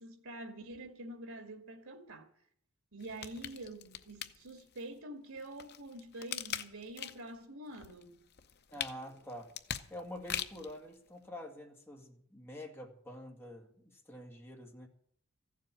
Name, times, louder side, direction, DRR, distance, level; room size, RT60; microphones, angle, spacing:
voice 1, 0.0-2.3 2.9-8.2, right 1 dB, 75° right, 2.3 m, -46 dB
sound 1, 3.0-4.8 5.4-7.4 7.7-10.8 11.3-11.4, left 9 dB, 50° left, 0.8 m, -41 dB
voice 2, 8.7-9.5 9.9-14.9, left 1 dB, 10° left, 2.2 m, -47 dB
15.0 x 7.5 x 9.8 m
head